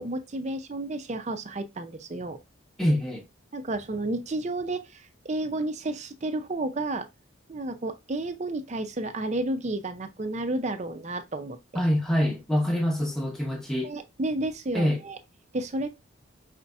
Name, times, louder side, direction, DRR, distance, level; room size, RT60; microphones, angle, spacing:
voice 1, 0.0-2.4 3.5-7.1 7.5-11.6 13.8-15.2 15.5-15.9, right 2 dB, 35° right, 0.5 m, -31 dB
voice 2, 2.8-3.2 11.7-13.9 14.7-15.0, equal, ahead, 0.8 m, -25 dB
5.1 x 4.0 x 2.2 m
head